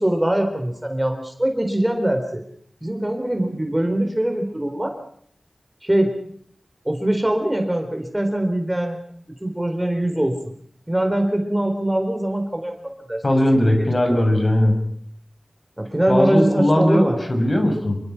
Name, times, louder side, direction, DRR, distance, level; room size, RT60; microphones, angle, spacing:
voice 1, 0.0-2.4 2.8-4.9 5.8-6.1 6.9-9.0 9.4-10.4 10.9-13.2 13.6-13.7 14.1-14.2 15.8-17.2, right 1 dB, 15° right, 5 dB, 4.0 m, -22 dB
voice 2, 13.2-14.8 16.1-18.0, left 1 dB, 40° left, 5 dB, 6.1 m, -19 dB
27.5 x 23.5 x 5.9 m, 0.63 s
wide cardioid pair, 70°, 0 cm